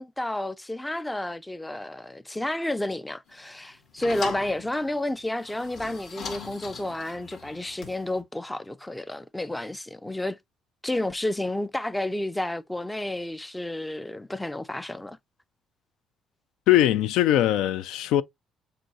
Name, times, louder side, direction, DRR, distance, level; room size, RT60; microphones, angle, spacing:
voice 1, 0.0-10.4 10.8-15.2, left 1 dB, 10° left, 0.4 m, -31 dB
sound 1, 3.3-8.2, left 4 dB, 60° left, 2.3 m, -39 dB
voice 2, 16.7-18.2, left 13 dB, 85° left, 0.3 m, -21 dB
7.6 x 2.7 x 2.7 m
cardioid pair, 100°, 0 cm